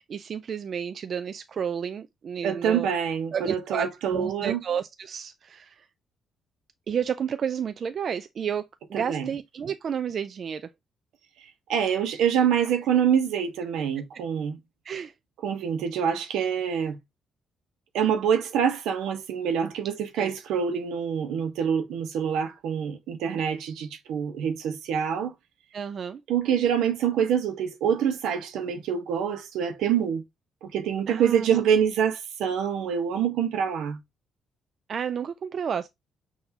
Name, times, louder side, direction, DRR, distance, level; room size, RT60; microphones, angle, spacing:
voice 1, 0.0-2.9 3.3-5.9 6.9-10.7 14.9-15.1 20.2-20.3 25.7-26.2 31.1-31.5 34.9-35.9, right 7 dB, 55° right, 0.4 m, -31 dB
voice 2, 2.4-4.6 9.1-9.3 11.7-14.6 15.4-17.0 17.9-25.3 26.3-30.2 30.6-34.0, right 8 dB, 85° right, 1.0 m, -26 dB
5.9 x 2.7 x 2.8 m
cardioid pair, 90°, 0 cm